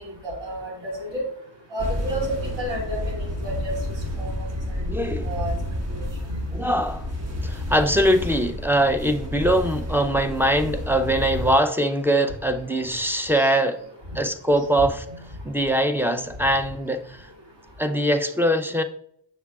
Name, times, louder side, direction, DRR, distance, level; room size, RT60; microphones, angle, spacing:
voice 1, 0.2-1.2 1.7-3.7 4.2-4.5 5.2-5.6 6.3-6.4 13.3-13.5, equal, 65° right, 2.7 m, -31 dB
sound 1, 1.8-11.5, left 1 dB, 35° right, 1.2 m, -30 dB
voice 2, 4.9-5.3 6.5-7.1 7.4-13.8 14.2-15.0 15.4-17.3 17.8-18.8, right 1 dB, 5° right, 0.5 m, -22 dB
7.0 x 6.5 x 2.3 m
cardioid pair, 70°, 45 cm